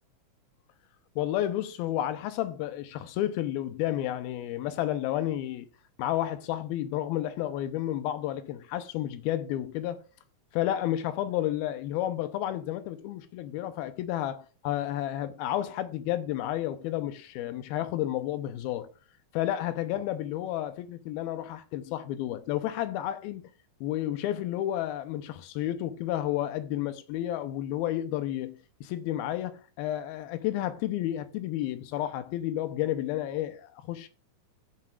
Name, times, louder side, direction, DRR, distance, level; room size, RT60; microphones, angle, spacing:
voice 1, 1.2-5.7 6.0-10.0 10.5-18.9 19.3-23.5 23.8-34.1, left 13 dB, 85° left, 2.7 m, -31 dB
15.0 x 7.6 x 2.4 m
omnidirectional pair, 4.3 m